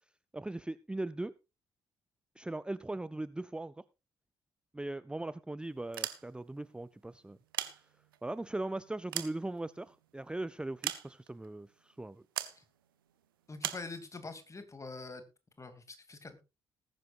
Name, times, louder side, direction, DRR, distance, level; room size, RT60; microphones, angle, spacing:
voice 1, 0.3-1.3 2.4-3.8 4.7-7.4 7.7-7.8 8.2-12.2, right 2 dB, 10° right, 17 dB, 0.5 m, -39 dB
sound 1, 5.8-6.6 7.3-8.3 8.8-10.0 10.8-11.5 12.4-12.6 13.6-13.9, right 12 dB, 80° right, 0.9 m, -39 dB
voice 2, 13.5-15.2 15.6-16.4, left 3 dB, 25° left, 10 dB, 2.7 m, -45 dB
19.5 x 10.5 x 2.5 m, 0.28 s
figure-of-eight pair, 40°, 11 cm